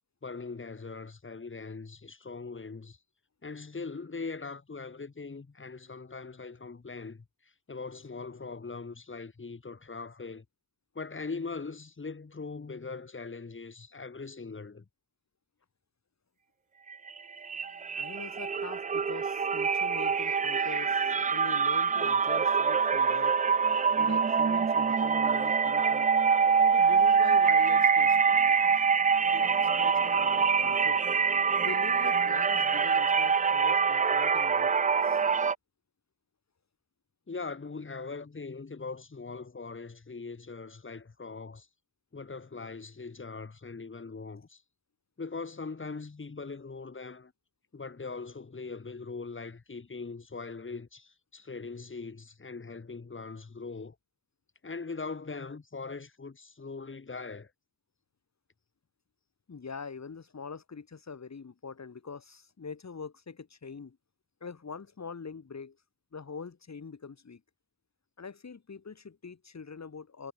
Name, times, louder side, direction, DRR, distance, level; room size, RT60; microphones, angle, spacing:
voice 1, 0.2-3.0 3.4-10.4 10.9-14.9 37.3-41.7 42.1-44.6 45.2-47.3 47.7-54.0 54.6-57.5, left 4 dB, 40° left, 2.2 m, -41 dB
sound 1, 16.9-17.2 17.4-35.5, right 6 dB, 25° right, 0.3 m, -25 dB
voice 2, 17.9-23.4 24.0-26.1 26.6-28.8 29.3-31.0 31.6-34.7 35.0-35.2 59.5-64.0 64.4-65.8 66.1-67.4 68.2-70.3, left 5 dB, 60° left, 4.1 m, -44 dB
cardioid pair, 60°, 30 cm